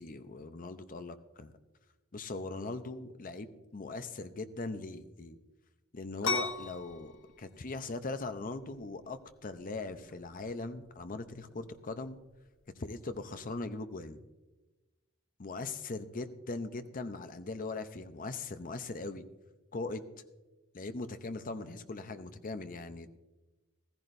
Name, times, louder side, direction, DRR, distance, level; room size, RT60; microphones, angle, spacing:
voice 1, 0.0-1.5 2.1-5.4 5.9-12.2 12.8-14.2 15.4-19.2 19.7-20.0 20.7-23.2, left 3 dB, 40° left, 10 dB, 0.6 m, -40 dB
sound 1, 6.2-13.6, left 4 dB, 60° left, 0.9 m, -41 dB
15.0 x 14.5 x 2.6 m, 1.1 s
head